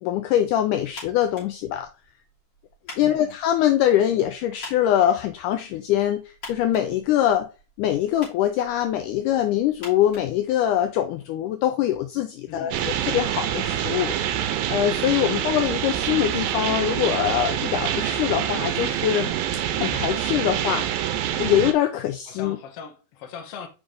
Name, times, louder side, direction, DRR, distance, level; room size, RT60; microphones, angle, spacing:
voice 1, 0.0-1.9 3.0-7.5 7.8-14.1 14.7-19.3 19.8-21.0 21.4-22.6, left 11 dB, 85° left, 1.8 m, -23 dB
sound 1, 0.9-11.1, left 3 dB, 30° left, 3.4 m, -47 dB
voice 2, 3.0-3.4 12.5-12.9 15.2-15.5 22.3-23.7, left 6 dB, 65° left, 1.5 m, -40 dB
sound 2, 12.7-21.7, right 10 dB, 85° right, 2.4 m, -26 dB
5.9 x 5.2 x 3.7 m
omnidirectional pair, 4.2 m